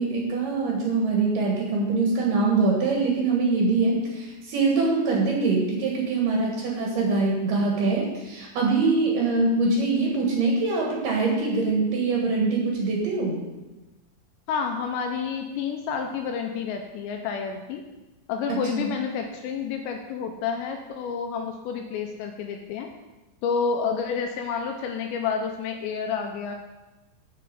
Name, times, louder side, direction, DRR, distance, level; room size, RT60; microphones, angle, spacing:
voice 1, 0.0-13.4 18.7-18.9, right 3 dB, 60° right, -2 dB, 2.6 m, -23 dB
voice 2, 14.5-17.8 18.3-22.9 23.4-26.6, left 6 dB, 80° left, 3 dB, 2.7 m, -29 dB
8.5 x 5.7 x 6.7 m, 1.1 s
omnidirectional pair, 5.3 m